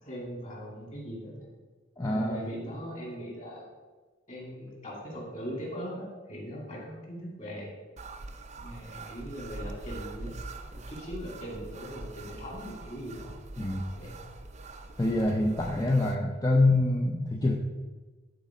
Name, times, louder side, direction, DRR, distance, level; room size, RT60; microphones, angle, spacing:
voice 1, 0.0-1.3 2.0-3.6 4.3-7.7 8.5-10.3 10.7-13.2 13.9-14.3, equal, 40° left, -2 dB, 2.5 m, -40 dB
voice 2, 2.0-2.5 13.6-13.8 15.0-17.6, left 2 dB, 20° left, -1 dB, 0.6 m, -25 dB
sound 1, 8.0-16.2, right 2 dB, 35° right, 0.5 m, -43 dB
11.5 x 4.1 x 5.1 m, 1.3 s
head